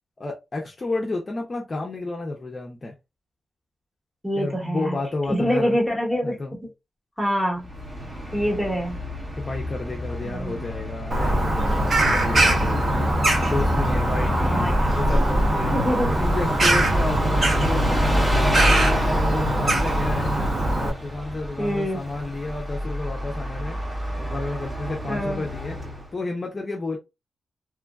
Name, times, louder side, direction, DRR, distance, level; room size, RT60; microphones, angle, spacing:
voice 1, 0.2-3.0 4.4-5.8 6.2-6.5 9.4-12.9 13.5-15.7 16.1-18.7 19.1-20.4 20.7-23.8 24.2-25.8 26.1-27.0, left 2 dB, 30° left, 0.6 m, -31 dB
voice 2, 4.2-5.0 5.3-6.7 7.2-7.7 8.3-9.0 10.2-10.6 14.3-14.9 15.7-16.1 20.3-20.5 21.6-22.0 25.1-25.4, equal, ahead, 1.3 m, -25 dB
Bus, 7.6-26.1, equal, 20° right, 1.5 m, -29 dB
Bird vocalization bird call bird song, 11.1-20.9, right 1 dB, 40° right, 1.0 m, -22 dB
3.0 x 2.4 x 2.3 m
wide cardioid pair, 130°, 0 cm